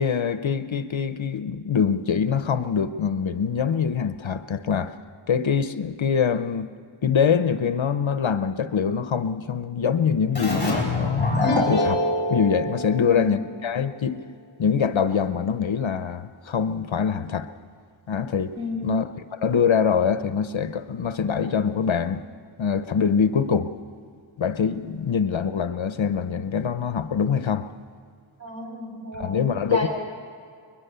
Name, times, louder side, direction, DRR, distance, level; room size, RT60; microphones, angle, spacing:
voice 1, 0.0-4.9 5.3-6.7 7.0-12.0 12.3-14.2 14.6-17.5 18.1-18.6 18.8-22.2 22.6-23.7 24.4-27.7 29.1-29.9, left 6 dB, 65° left, 11 dB, 0.9 m, -24 dB
Keyboard (musical), 10.3-13.7, left 1 dB, 20° left, 5.0 m, -26 dB
voice 2, 12.9-13.4 18.6-18.9 28.4-29.4 29.7-29.9, left 1 dB, 30° right, 0 dB, 6.2 m, -32 dB
22.0 x 21.5 x 6.8 m, 2.2 s
wide cardioid pair, 100°, 50 cm